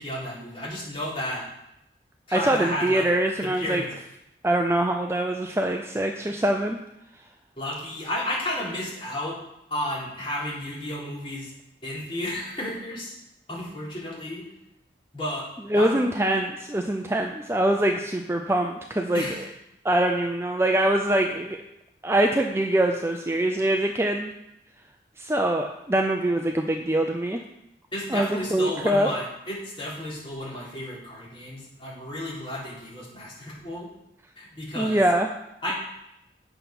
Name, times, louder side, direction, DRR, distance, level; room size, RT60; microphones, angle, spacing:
voice 1, 0.0-1.5 2.3-3.1 3.4-3.9 7.6-9.4 9.7-11.5 11.8-13.2 13.5-14.4 15.1-15.5 15.7-16.0 19.1-19.4 27.9-33.9 34.4-35.0 35.6-35.7, left 1 dB, 30° left, -7 dB, 3.9 m, -32 dB
voice 2, 2.3-3.8 4.4-6.8 15.7-19.2 19.8-21.6 22.0-24.3 25.2-27.4 28.1-29.1 34.8-35.3, right 1 dB, 15° right, 3 dB, 0.5 m, -24 dB
8.9 x 6.7 x 6.0 m, 0.84 s
head